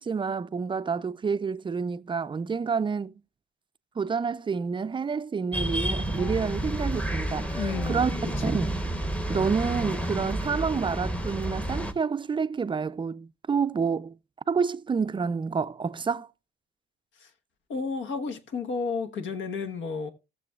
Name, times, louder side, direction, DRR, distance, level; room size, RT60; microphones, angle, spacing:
voice 1, 0.0-3.1 4.0-7.6 7.9-8.1 8.4-8.8 9.3-14.1 14.5-16.3, right 5 dB, 25° right, 0.4 m, -28 dB
sound 1, 5.5-11.9, right 1 dB, 5° left, 0.9 m, -30 dB
voice 2, 7.5-8.6 17.2-17.3 17.7-20.1, left 5 dB, 70° left, 1.2 m, -32 dB
17.5 x 6.8 x 2.3 m
cardioid pair, 90°, 20 cm